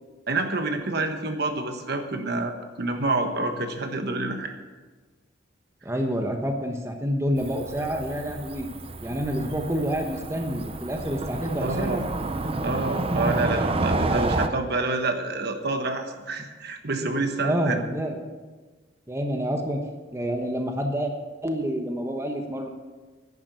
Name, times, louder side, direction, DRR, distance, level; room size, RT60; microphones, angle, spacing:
voice 1, 0.3-4.6 11.6-12.0 12.6-17.8, right 2 dB, 60° right, 6 dB, 1.3 m, -28 dB
voice 2, 5.8-8.7 9.0-12.0 17.4-18.4 19.1-19.8 20.1-21.1 21.4-22.7, equal, 15° right, 3 dB, 1.1 m, -28 dB
Cricket / Motor vehicle (road), 7.4-14.5, right 2 dB, 30° right, 0.7 m, -29 dB
10.5 x 10.0 x 6.8 m, 1.3 s
head